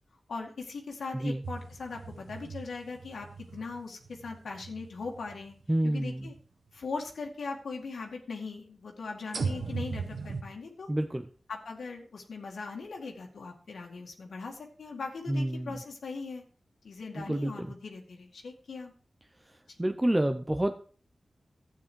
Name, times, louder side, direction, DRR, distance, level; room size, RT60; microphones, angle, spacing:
voice 1, 0.3-3.3 3.5-5.6 5.8-6.4 6.7-10.9 11.5-16.4 16.8-18.9, left 4 dB, 90° left, 1 dB, 2.1 m, -40 dB
sound 1, 1.4-5.7 6.3-6.4 9.3-10.4, right 4 dB, 85° right, 1.7 m, -38 dB
voice 2, 5.7-6.3 10.9-11.3 15.3-15.8 17.1-17.7 19.8-20.8, right 1 dB, 15° right, 7 dB, 0.7 m, -29 dB
12.5 x 8.8 x 4.6 m, 0.41 s
wide cardioid pair, 90°, 0 cm